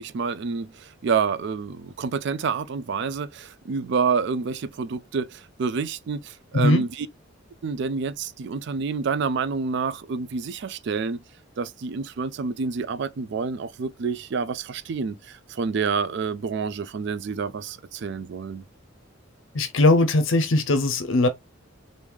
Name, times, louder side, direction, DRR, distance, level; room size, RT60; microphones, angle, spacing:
voice 1, 0.0-7.1 7.6-11.2 11.6-18.6, right 5 dB, 60° right, 0.4 m, -28 dB
voice 2, 19.5-21.3, left 2 dB, 70° left, 0.6 m, -20 dB
3.1 x 2.6 x 3.3 m
head